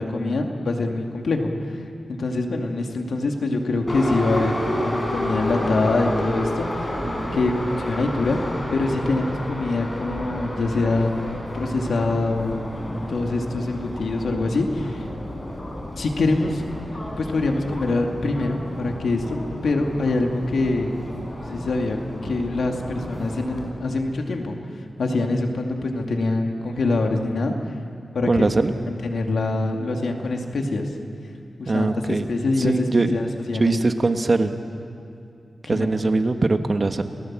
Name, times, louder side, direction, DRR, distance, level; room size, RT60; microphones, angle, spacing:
voice 1, 0.0-1.8 2.1-7.0 7.3-8.4 8.7-11.1 11.5-12.7 13.1-15.0 16.0-16.6 17.2-19.4 19.6-21.0 21.5-24.6 25.0-27.5 28.1-28.5 28.9-30.9 31.6-33.7 35.6-36.1, left 2 dB, 85° left, 2 dB, 2.4 m, -24 dB
Subway metro underground, 3.9-23.7, left 1 dB, 30° left, 5.2 m, -31 dB
voice 2, 7.0-7.4 28.3-28.7 31.6-32.3 32.6-33.2 33.6-34.5 35.7-37.0, right 3 dB, 40° right, 7 dB, 1.4 m, -21 dB
29.5 x 19.0 x 7.6 m, 2.5 s
wide cardioid pair, 90°, 0 cm